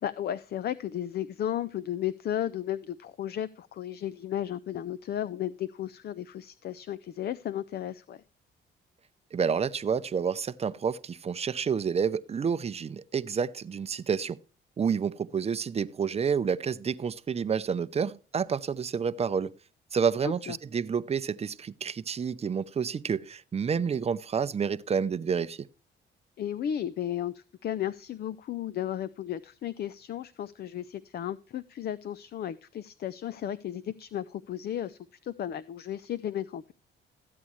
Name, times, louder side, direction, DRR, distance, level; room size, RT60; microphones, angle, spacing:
voice 1, 0.0-8.2 20.2-20.6 26.4-36.7, left 11 dB, 55° left, 0.5 m, -34 dB
voice 2, 9.3-14.4 14.8-19.5 19.9-25.7, right 6 dB, 30° right, 0.6 m, -29 dB
14.0 x 8.4 x 3.1 m
cardioid pair, 90°, 20 cm